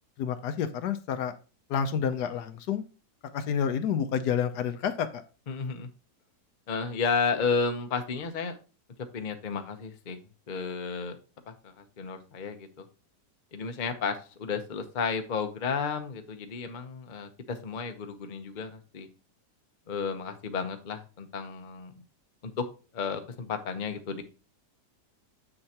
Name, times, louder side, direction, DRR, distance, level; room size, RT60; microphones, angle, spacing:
voice 1, 0.2-1.3 1.7-2.8 3.3-5.2, left 8 dB, 70° left, 10 dB, 1.2 m, -29 dB
voice 2, 5.5-5.9 6.7-8.6 9.1-10.2 10.5-11.2 11.5-12.8 13.5-19.1 19.9-21.9 22.4-22.6 22.9-24.2, left 5 dB, 40° left, 7 dB, 0.6 m, -32 dB
7.7 x 6.6 x 2.9 m, 0.34 s
omnidirectional pair, 1.9 m